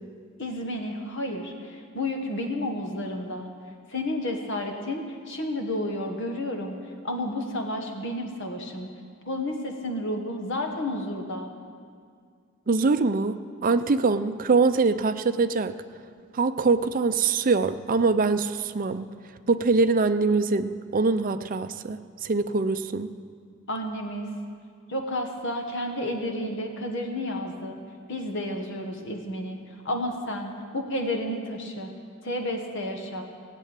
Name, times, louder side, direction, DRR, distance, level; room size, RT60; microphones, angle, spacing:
voice 1, 0.4-3.5 3.9-6.7 7.0-8.9 9.2-11.5 23.7-24.3 24.9-27.8 28.1-29.6 29.8-31.9 32.2-33.2, left 1 dB, 60° left, 3 dB, 1.5 m, -31 dB
voice 2, 12.7-15.8 16.3-19.1 19.5-23.1, right 4 dB, 40° right, 10 dB, 0.5 m, -23 dB
16.5 x 7.7 x 9.0 m, 2.1 s
head